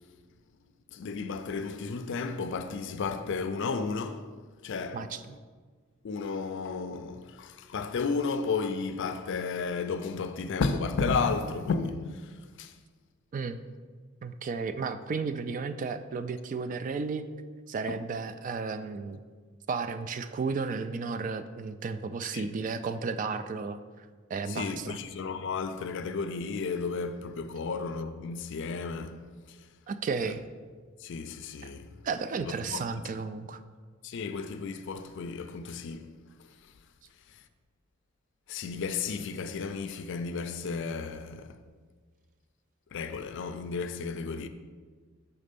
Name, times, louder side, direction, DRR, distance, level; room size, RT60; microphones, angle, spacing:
voice 1, 0.9-4.3 4.6-5.0 6.0-12.8 17.9-18.1 22.3-22.5 24.5-29.2 29.5-29.7 31.0-32.0 32.4-32.8 34.0-36.7 37.3-37.4 38.5-41.6 42.9-44.5, left 4 dB, 60° left, 0.4 m, -33 dB
voice 2, 4.9-5.3 13.3-13.6 14.2-17.3 17.7-19.2 19.7-25.0 29.9-30.4 32.0-33.6, right 4 dB, 40° right, 0.3 m, -33 dB
5.9 x 4.2 x 5.2 m
head